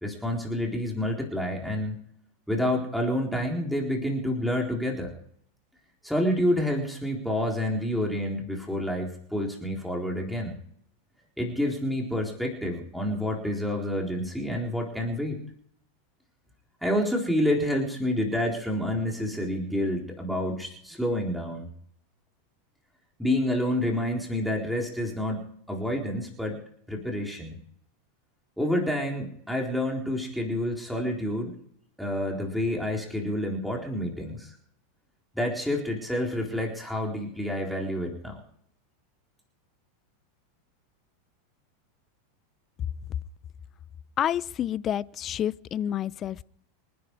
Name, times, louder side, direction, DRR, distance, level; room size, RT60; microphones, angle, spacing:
voice 1, 0.0-2.0 2.5-5.1 6.0-10.6 11.4-15.4 16.8-21.7 23.2-26.6 26.9-27.6 28.6-31.5 32.0-34.5 35.3-38.4, left 1 dB, ahead, 4.0 m, -28 dB
voice 2, 44.2-46.4, left 10 dB, 35° left, 0.6 m, -29 dB
26.5 x 10.5 x 4.8 m
hypercardioid pair, 115°, 0 cm